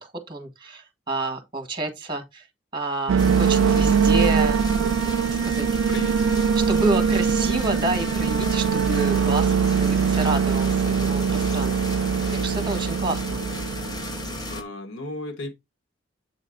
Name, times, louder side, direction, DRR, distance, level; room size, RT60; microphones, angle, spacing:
voice 1, 0.0-2.5 2.7-4.9 5.3-5.9 6.5-12.0 12.3-13.4, right 2 dB, 25° right, 1.7 m, -29 dB
sound 1, 3.1-14.6, right 6 dB, 85° right, 0.4 m, -22 dB
sound 2, 3.2-14.6, left 2 dB, 20° left, 1.0 m, -34 dB
voice 2, 5.9-6.5 12.2-12.6 14.5-15.5, left 1 dB, 80° left, 1.1 m, -36 dB
8.1 x 4.2 x 3.7 m
head